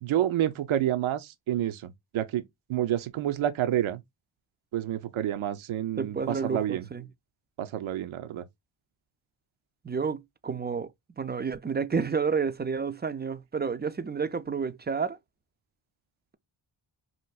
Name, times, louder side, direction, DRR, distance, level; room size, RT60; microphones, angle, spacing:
voice 1, 0.0-2.4 2.7-4.0 4.7-6.9 7.6-8.4, right 11 dB, 75° right, 0.6 m, -29 dB
voice 2, 6.0-7.1 9.8-10.9 11.2-15.2, right 5 dB, 20° right, 0.4 m, -30 dB
4.4 x 2.5 x 2.2 m
cardioid pair, 55°, 49 cm